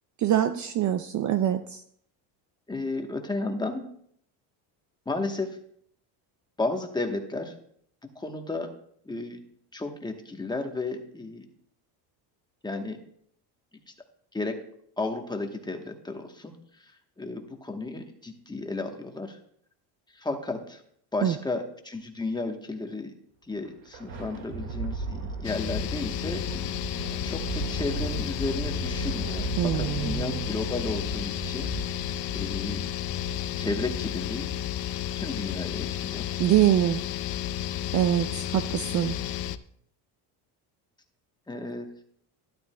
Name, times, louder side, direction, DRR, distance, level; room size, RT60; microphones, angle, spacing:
voice 1, 0.2-1.8 21.2-21.4 29.6-30.4 36.4-37.0 37.9-39.2, right 11 dB, 40° right, 10 dB, 0.4 m, -24 dB
voice 2, 2.7-3.8 5.1-5.5 6.6-7.5 8.1-8.7 9.0-9.4 9.7-11.4 12.6-13.0 14.3-14.5 15.0-16.5 17.2-19.4 20.1-20.8 21.1-23.1 23.5-26.8 27.2-31.7 32.3-32.8 33.6-34.5 35.2-36.2 41.5-41.9, left 2 dB, 10° left, 4 dB, 1.0 m, -33 dB
Thunder, 23.5-34.3, right 4 dB, 75° right, 1.9 m, -36 dB
sound 1, 25.4-39.6, left 11 dB, 50° left, 0.5 m, -32 dB
12.0 x 12.0 x 2.2 m, 0.67 s
cardioid pair, 125°, 46 cm